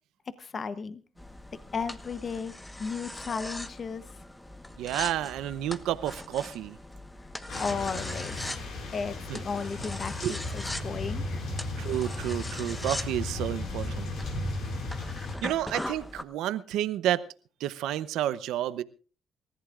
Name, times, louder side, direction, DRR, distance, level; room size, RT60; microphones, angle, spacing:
voice 1, 0.3-1.0 1.7-2.5 2.8-4.0 7.6-8.4 8.9-11.4, left 5 dB, 45° left, 13 dB, 0.9 m, -34 dB
sound 1, 1.2-16.2, left 1 dB, 10° left, 1.2 m, -41 dB
voice 2, 4.8-6.8 9.3-9.4 10.2-10.3 11.8-14.1 15.4-17.2 17.6-18.8, right 12 dB, 90° right, 15 dB, 0.7 m, -30 dB
sound 2, 7.5-15.4, left 2 dB, 75° left, 5.7 m, -35 dB
28.0 x 14.5 x 2.5 m, 0.37 s
cardioid pair, 90°, 0 cm